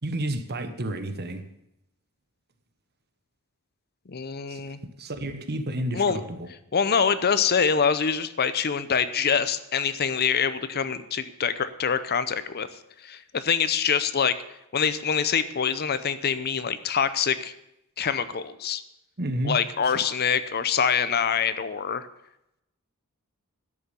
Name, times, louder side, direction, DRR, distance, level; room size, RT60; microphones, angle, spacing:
voice 1, 0.0-1.4 4.5-4.6 5.0-6.5 19.2-19.6, right 1 dB, 45° right, 1.2 m, -30 dB
voice 2, 4.1-4.8 5.9-6.2 6.7-12.7 13.0-14.4 14.7-17.5 18.0-18.8 19.4-22.1, left 6 dB, 45° left, 0.7 m, -25 dB
12.0 x 6.8 x 9.6 m
head